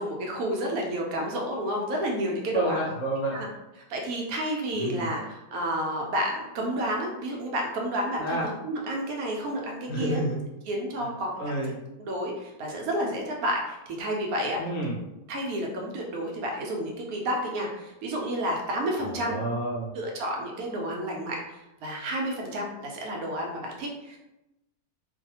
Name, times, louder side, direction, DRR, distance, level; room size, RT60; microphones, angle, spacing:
voice 1, 0.0-2.8 3.3-3.5 3.8-10.2 10.7-14.6 15.3-19.4 19.9-24.2, right 1 dB, 70° right, 0 dB, 1.0 m, -31 dB
voice 2, 2.5-3.4 4.7-5.1 8.2-8.4 9.9-10.4 11.4-11.7 14.6-14.9 19.2-19.9, right 1 dB, 65° left, -3 dB, 0.9 m, -29 dB
2.6 x 2.3 x 2.7 m, 0.94 s
omnidirectional pair, 1.7 m